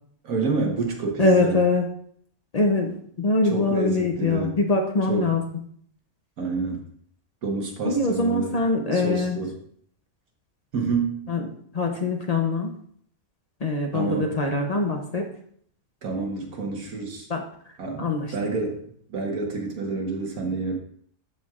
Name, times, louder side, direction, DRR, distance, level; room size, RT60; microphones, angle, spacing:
voice 1, 0.2-1.6 3.4-4.6 5.1-5.3 6.4-6.9 7.4-8.6 8.9-9.5 10.7-11.2 13.9-14.3 16.0-17.3 17.8-20.8, right 4 dB, 80° right, 1 dB, 1.8 m, -28 dB
voice 2, 1.2-1.9 2.5-5.4 7.8-9.4 11.3-11.5 11.7-12.8 13.6-15.3 17.3-17.4 18.0-18.3, left 3 dB, 40° left, 2 dB, 0.5 m, -23 dB
12.5 x 4.5 x 2.4 m, 0.62 s
omnidirectional pair, 1.5 m